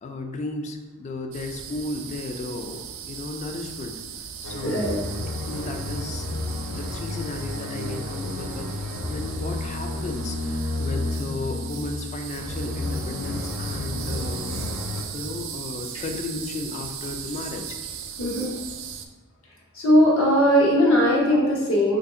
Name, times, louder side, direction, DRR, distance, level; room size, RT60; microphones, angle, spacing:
voice 1, 0.0-4.9 5.5-6.3 6.7-8.7 9.0-14.6 15.1-17.8, left 3 dB, 35° left, 4 dB, 0.3 m, -34 dB
sound 1, 1.3-19.1, right 8 dB, 65° right, 0.3 m, -38 dB
sound 2, 4.4-15.0, left 2 dB, 85° left, 0.5 m, -31 dB
voice 2, 4.6-5.0 14.8-14.9 18.2-18.5 19.7-22.0, equal, 70° left, -3 dB, 0.9 m, -19 dB
3.1 x 2.5 x 3.6 m, 1.2 s
head